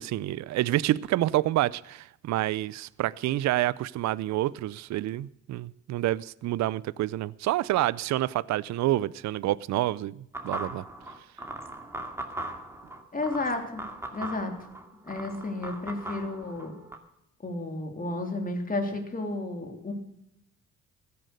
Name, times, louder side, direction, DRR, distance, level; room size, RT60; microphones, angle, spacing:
voice 1, 0.0-10.8, right 15 dB, 65° right, 0.5 m, -28 dB
sound 1, 10.3-17.0, right 1 dB, 10° right, 2.4 m, -39 dB
voice 2, 13.1-13.8 14.1-14.5 15.0-16.7 17.4-19.9, left 2 dB, 30° left, 3.4 m, -32 dB
15.5 x 10.5 x 6.6 m
cardioid pair, 90°, 30 cm